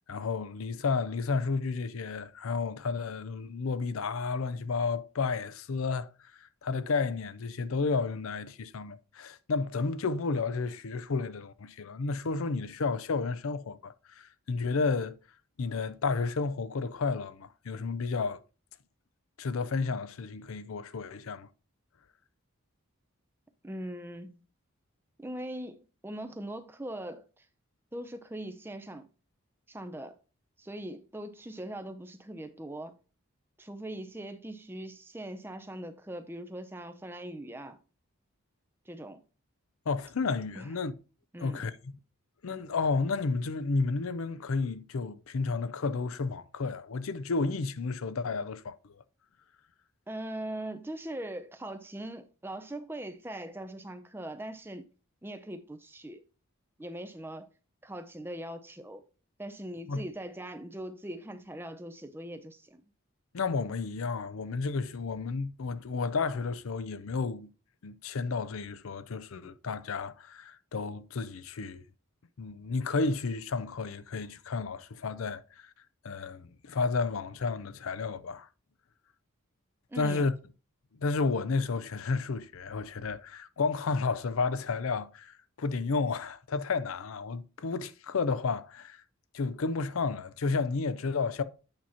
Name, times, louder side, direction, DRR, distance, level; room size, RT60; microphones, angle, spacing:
voice 1, 0.1-6.1 6.6-15.2 15.6-18.4 19.4-21.5 39.9-40.9 41.4-41.9 42.4-49.0 59.9-60.0 63.3-67.5 67.8-71.8 72.4-75.7 76.0-78.5 80.0-80.3 81.0-89.0 89.3-91.4, left 4 dB, 75° left, 0.5 m, -32 dB
voice 2, 23.6-24.4 25.2-27.5 27.9-29.1 29.7-30.2 30.6-32.9 33.6-37.8 38.9-39.2 40.5-40.7 41.3-41.7 50.1-54.9 55.2-56.2 56.8-57.5 57.8-59.0 59.4-62.8 79.9-80.3, right 1 dB, 10° right, 0.5 m, -41 dB
8.7 x 2.9 x 5.5 m
head